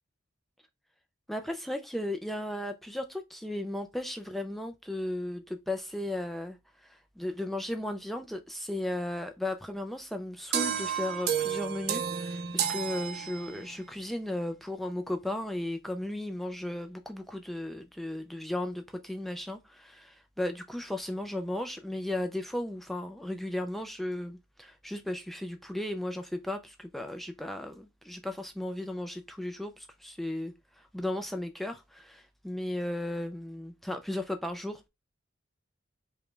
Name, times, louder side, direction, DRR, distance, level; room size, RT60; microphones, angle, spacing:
voice 1, 1.3-34.8, left 1 dB, ahead, 0.3 m, -35 dB
sound 1, 10.5-13.8, right 8 dB, 50° right, 0.5 m, -31 dB
4.9 x 2.2 x 3.2 m
head